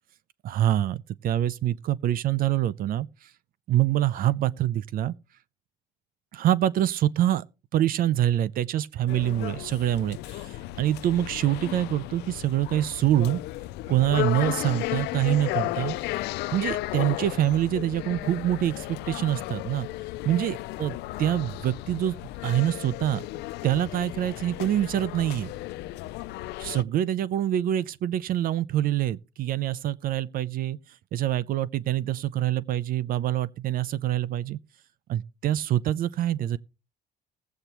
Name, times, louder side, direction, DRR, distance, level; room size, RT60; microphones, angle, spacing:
voice 1, 0.4-3.3 3.7-5.1 6.3-7.4 7.7-13.4 13.9-16.0 16.5-19.9 20.2-22.2 22.4-23.2 23.6-25.5 26.6-30.8 31.1-34.6 35.1-36.6, right 12 dB, 60° right, 0.5 m, -25 dB
sound 1, 9.1-26.8, left 17 dB, 85° left, 0.4 m, -34 dB
20.0 x 8.0 x 2.9 m
cardioid pair, 110°, 17 cm